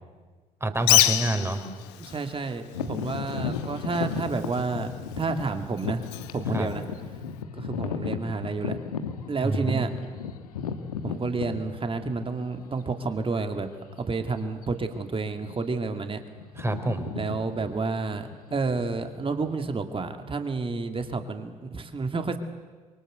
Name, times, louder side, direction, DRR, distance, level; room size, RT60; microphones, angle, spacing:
voice 1, 0.6-1.6 6.5-6.7 9.3-9.9 16.6-17.1, right 2 dB, 15° right, 7 dB, 3.9 m, -27 dB
Bird, 0.8-7.4, left 16 dB, 65° left, 1.2 m, -29 dB
voice 2, 2.0-6.1 6.3-6.8 7.6-8.8 9.3-9.9 11.0-13.7 14.0-16.2 17.1-22.4, right 4 dB, 30° right, 7 dB, 2.5 m, -30 dB
sound 1, 2.7-12.5 13.2-13.3 13.9-14.1 14.4-14.7 15.3-15.9 16.1-19.5, left 6 dB, 80° left, 1.4 m, -35 dB
28.0 x 23.5 x 8.1 m, 1.4 s
figure-of-eight pair, 55°, 19 cm